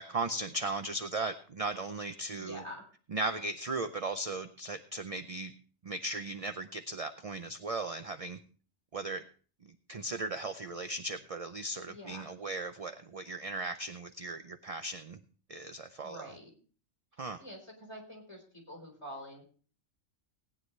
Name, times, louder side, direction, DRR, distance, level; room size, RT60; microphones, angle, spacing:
voice 1, 0.0-2.6 3.1-5.5 5.8-8.4 8.9-9.2 9.6-15.2 15.5-16.3 17.2-17.4, right 2 dB, 45° right, 9 dB, 0.5 m, -37 dB
voice 2, 2.4-2.8 11.9-12.3 16.0-16.5 17.4-19.4, equal, 20° left, 1 dB, 4.2 m, -46 dB
18.5 x 9.7 x 3.2 m, 0.40 s
omnidirectional pair, 1.4 m